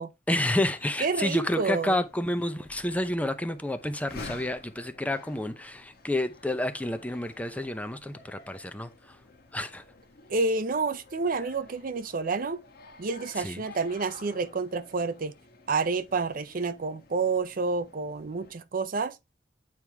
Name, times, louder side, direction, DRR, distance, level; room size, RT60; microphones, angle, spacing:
voice 1, 0.3-8.9 9.5-9.8 13.4-13.6, left 1 dB, 10° left, 0.6 m, -29 dB
sound 1, 0.7-18.5, left 3 dB, 60° left, 1.4 m, -51 dB
voice 2, 1.0-2.0 10.3-12.6 13.0-15.3 15.7-19.2, right 4 dB, 50° right, 0.6 m, -29 dB
8.9 x 4.8 x 3.4 m
head